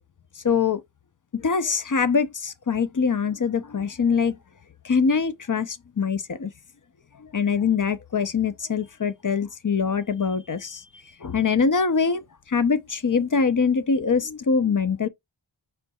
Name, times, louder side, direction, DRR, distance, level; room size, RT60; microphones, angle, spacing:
voice 1, 0.4-0.8 1.3-4.4 4.8-6.5 7.2-10.8 11.2-15.1, left 5 dB, 40° left, 0.6 m, -23 dB
5.2 x 4.5 x 2.3 m
wide cardioid pair, 50°, 47 cm